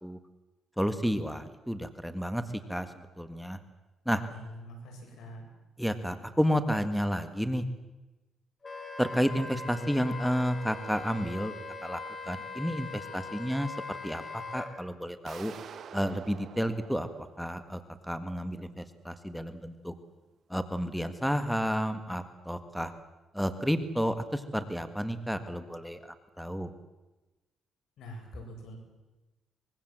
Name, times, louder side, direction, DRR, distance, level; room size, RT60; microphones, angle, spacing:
voice 1, 0.8-2.4 2.7-2.9 3.2-3.6 4.1-4.2 5.8-7.6 9.0-11.5 11.8-12.0 12.3-15.5 15.9-19.9 20.5-22.9 23.3-26.7, equal, ahead, 10 dB, 1.7 m, -31 dB
voice 2, 4.3-5.5 28.0-28.7, equal, 80° left, 2 dB, 7.9 m, -45 dB
Wind instrument woodwind instrument, 8.6-14.7, left 3 dB, 30° left, 4.9 m, -41 dB
sound 1, 15.3-18.1, right 7 dB, 60° right, 1.9 m, -48 dB
24.5 x 22.5 x 7.6 m, 1.1 s
cardioid pair, 90°, 0 cm